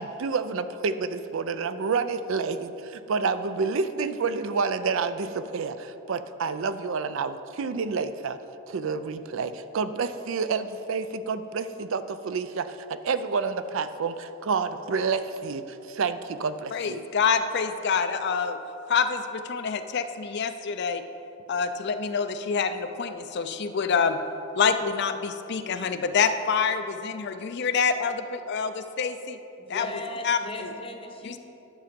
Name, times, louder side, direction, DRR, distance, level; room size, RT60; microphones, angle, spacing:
voice 1, 0.0-8.4 8.7-17.0, right 5 dB, 60° right, 12 dB, 0.4 m, -29 dB
voice 2, 16.7-18.6 18.9-21.0 21.5-24.2 24.5-29.4 29.7-29.9 30.2-30.7 31.2-31.3, left 6 dB, 50° left, 9 dB, 0.4 m, -26 dB
voice 3, 29.6-31.4, left 1 dB, 25° left, 4 dB, 0.8 m, -37 dB
10.5 x 6.8 x 5.1 m, 2.9 s
head